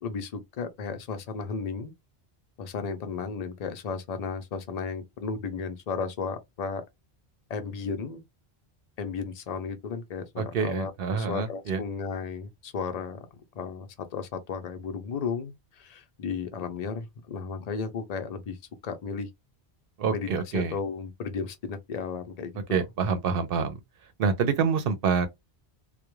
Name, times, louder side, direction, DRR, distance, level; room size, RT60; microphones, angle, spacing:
voice 1, 0.0-1.9 2.6-6.8 7.5-8.2 9.0-13.2 13.6-18.6 18.8-19.3 20.1-20.3 20.5-22.8, left 5 dB, 50° left, 0.6 m, -34 dB
voice 2, 10.4-11.8 20.0-20.8 22.7-23.8 24.2-25.3, right 6 dB, 65° right, 0.7 m, -26 dB
2.3 x 2.1 x 3.0 m
omnidirectional pair, 1.1 m